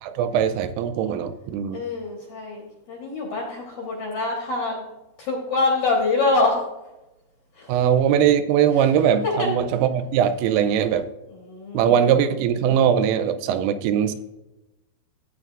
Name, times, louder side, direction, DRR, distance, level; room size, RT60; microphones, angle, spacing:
voice 1, 0.0-1.8 7.7-11.1 11.7-14.2, right 9 dB, 85° right, 11 dB, 3.3 m, -21 dB
voice 2, 1.7-4.8 5.2-6.6 7.6-7.7 9.2-9.5 11.3-11.9, left 3 dB, 70° left, -2 dB, 2.3 m, -25 dB
15.0 x 9.0 x 2.4 m, 0.99 s
omnidirectional pair, 5.7 m